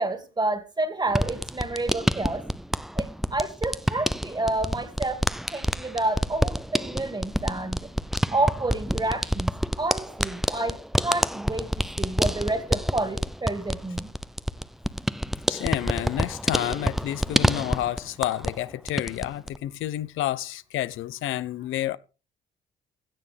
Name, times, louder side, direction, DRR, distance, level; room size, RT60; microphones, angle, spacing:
voice 1, 0.0-2.4 3.0-5.2 5.5-7.9 8.3-9.5 9.8-10.8 11.0-14.1, right 2 dB, 20° right, 2.4 m, -29 dB
sound 1, 1.1-18.6 18.9-19.6, equal, ahead, 0.6 m, -28 dB
voice 2, 15.5-22.0, left 13 dB, 85° left, 0.8 m, -30 dB
16.5 x 13.5 x 3.5 m
cardioid pair, 90°, 20 cm